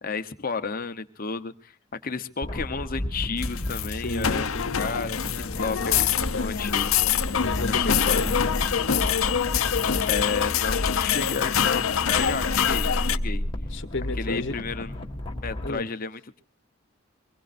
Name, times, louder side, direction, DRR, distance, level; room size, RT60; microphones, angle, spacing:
voice 1, 0.0-1.7 2.0-4.5 4.8-6.1 6.3-6.9 7.7-8.2 10.1-13.4 14.2-14.9 15.4-16.4, left 5 dB, 40° left, 9 dB, 0.9 m, -32 dB
sound 1, 2.4-15.7, left 1 dB, 25° left, 1.8 m, -33 dB
sound 2, 3.4-13.2, left 8 dB, 75° left, 0.6 m, -25 dB
voice 2, 3.9-4.8 5.6-6.0 7.4-8.5 13.7-14.5 15.6-15.9, left 2 dB, 60° left, 9 dB, 1.2 m, -32 dB
23.5 x 21.0 x 2.6 m, 0.39 s
head